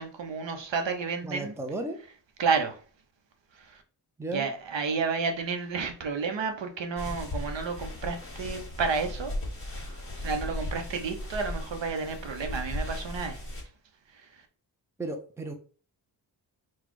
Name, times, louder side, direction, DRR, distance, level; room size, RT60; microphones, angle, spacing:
voice 1, 0.0-1.5 2.4-2.8 3.6-3.8 4.3-9.3 9.9-13.4, right 5 dB, 80° right, 0.8 m, -31 dB
voice 2, 1.2-2.0 4.2-4.5 15.0-15.5, right 2 dB, 5° right, 0.5 m, -34 dB
sound 1, 7.0-13.6, left 1 dB, 30° left, 1.4 m, -36 dB
4.1 x 2.3 x 4.5 m
wide cardioid pair, 150°, 44 cm